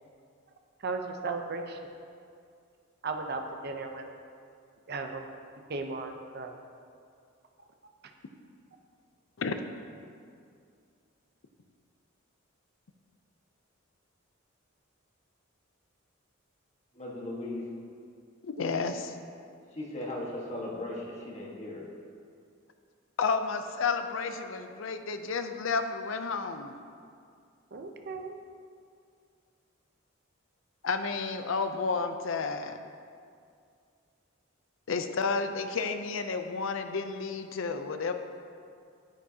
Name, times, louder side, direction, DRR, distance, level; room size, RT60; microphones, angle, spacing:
voice 1, 0.8-1.8 3.0-4.1 4.9-5.2 5.7-6.5 27.7-28.4, right 3 dB, 50° right, 4 dB, 0.7 m, -36 dB
voice 2, 16.9-17.7 19.7-21.9, left 1 dB, 35° left, -3 dB, 1.5 m, -37 dB
voice 3, 18.4-19.2 23.2-26.8 30.8-32.8 34.9-38.1, left 4 dB, 70° left, 8 dB, 0.5 m, -31 dB
10.0 x 8.6 x 2.8 m, 2.3 s
head